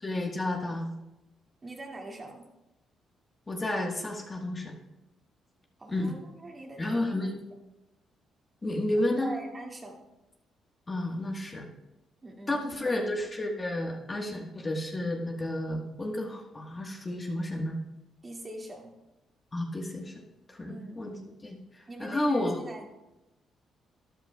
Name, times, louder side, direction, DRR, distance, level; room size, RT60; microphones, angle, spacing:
voice 1, 0.0-0.9 3.5-4.7 5.9-6.1 6.8-7.4 8.6-9.3 10.9-11.7 12.5-17.8 19.5-20.1 20.5-22.6, left 1 dB, 25° left, 0 dB, 1.4 m, -31 dB
voice 2, 1.6-2.5 5.8-7.3 9.2-10.0 12.2-12.6 18.2-19.0 20.7-21.0 21.9-22.9, right 2 dB, 30° right, 0 dB, 2.2 m, -43 dB
12.5 x 11.0 x 2.3 m, 0.96 s
cardioid pair, 90°, 0 cm